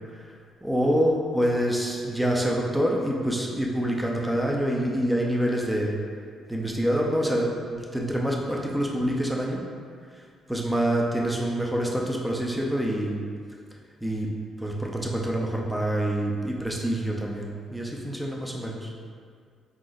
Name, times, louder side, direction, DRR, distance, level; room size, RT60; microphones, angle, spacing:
voice 1, 0.6-6.0 6.5-9.6 10.2-10.3 10.5-13.2 14.0-14.3 14.6-18.9, equal, 5° right, -2 dB, 0.6 m, -26 dB
4.0 x 3.9 x 2.6 m, 2.2 s
cardioid pair, 90°, 0 cm